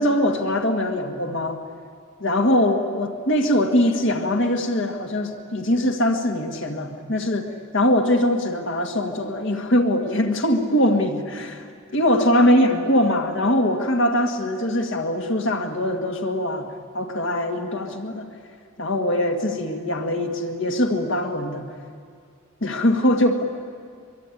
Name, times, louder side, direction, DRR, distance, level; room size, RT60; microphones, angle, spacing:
voice 1, 0.0-1.6 2.2-11.7 11.9-16.7 16.9-18.3 18.8-21.7 22.6-23.4, left 1 dB, 55° left, 4 dB, 1.9 m, -22 dB
24.0 x 23.5 x 9.9 m, 2.2 s
head